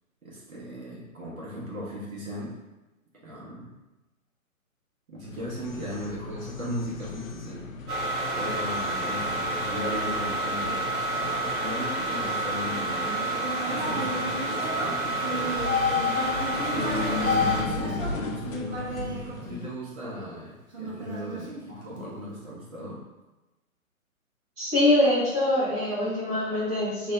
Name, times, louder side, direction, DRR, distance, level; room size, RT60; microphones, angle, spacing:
voice 1, 0.2-2.5 3.2-3.7 5.1-7.6 8.4-10.8 11.1-15.5 16.7-23.0, equal, 70° right, -6 dB, 1.4 m, -36 dB
sound 1, 5.2-19.6, left 5 dB, 65° left, 0.5 m, -34 dB
sound 2, 7.9-17.6, right 2 dB, 90° right, 1.2 m, -29 dB
Human voice, 12.8-20.1 20.7-22.2, right 1 dB, 50° right, 0.9 m, -35 dB
voice 2, 24.6-27.1, left 1 dB, 5° right, -15 dB, 0.6 m, -24 dB
3.2 x 2.1 x 3.6 m, 1.1 s
figure-of-eight pair, 130°, 43 cm